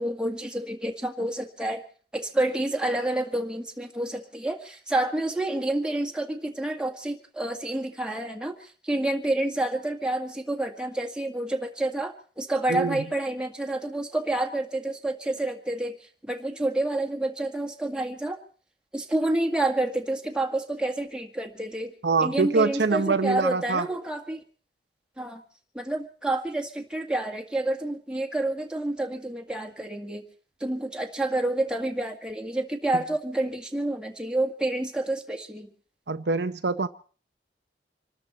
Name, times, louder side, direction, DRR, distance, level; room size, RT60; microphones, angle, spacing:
voice 1, 0.0-1.8 2.1-16.0 16.2-18.4 18.9-21.9 22.2-24.4 25.2-25.4 25.7-30.2 30.6-35.7, right 1 dB, 5° right, 3 dB, 1.8 m, -29 dB
voice 2, 12.7-13.0 22.0-23.9 36.1-36.9, right 4 dB, 70° right, 9 dB, 0.7 m, -24 dB
26.5 x 13.0 x 4.3 m, 0.42 s
head